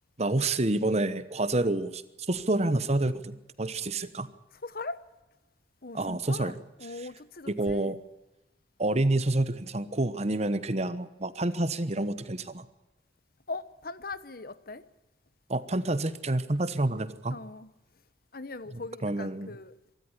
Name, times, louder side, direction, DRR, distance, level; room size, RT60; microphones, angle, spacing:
voice 1, 0.2-2.0 2.3-4.3 5.9-6.5 7.5-8.0 8.8-12.6 15.5-17.4 19.0-19.5, right 2 dB, 35° right, 1.1 m, -28 dB
voice 2, 4.6-5.0 5.8-8.0 13.5-14.8 17.3-17.7 18.3-19.7, left 3 dB, 55° left, 1.0 m, -40 dB
24.0 x 13.5 x 9.8 m
head